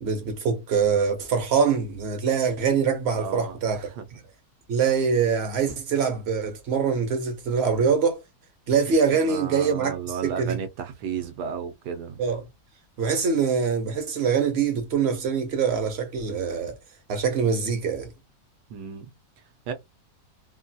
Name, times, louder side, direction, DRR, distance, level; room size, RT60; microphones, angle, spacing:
voice 1, 0.0-3.8 4.7-8.2 8.7-10.0 10.2-10.6 12.2-12.4 13.0-16.8 17.1-18.1, right 6 dB, 60° right, 0.6 m, -24 dB
voice 2, 3.1-4.1 8.9-12.2 18.7-19.1 19.7-19.8, right 7 dB, 90° right, 1.2 m, -34 dB
3.0 x 2.2 x 2.6 m
omnidirectional pair, 1.7 m